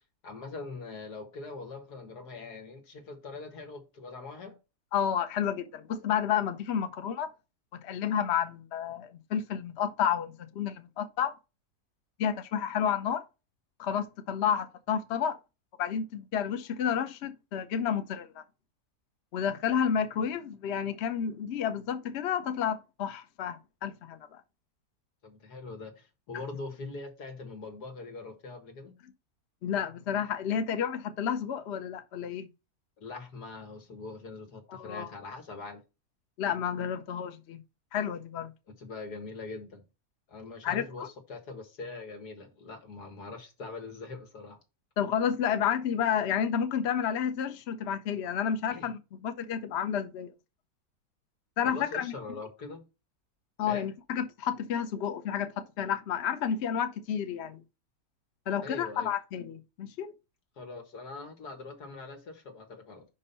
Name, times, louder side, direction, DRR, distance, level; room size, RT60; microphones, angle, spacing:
voice 1, 0.2-4.6 25.2-29.0 33.0-35.8 38.8-39.8 40.3-44.6 48.7-48.9 51.6-52.8 53.7-53.9 58.6-59.1 60.6-63.1, left 3 dB, 85° left, 2.2 m, -42 dB
voice 2, 4.9-7.3 7.7-11.3 12.2-13.2 13.8-15.4 15.8-18.4 19.3-24.4 29.6-32.5 34.7-35.1 36.4-37.6 37.9-38.5 40.6-41.1 45.0-50.3 51.6-52.1 53.6-57.6 58.5-60.1, left 8 dB, 55° left, 0.9 m, -31 dB
5.4 x 5.4 x 5.5 m
omnidirectional pair, 1.7 m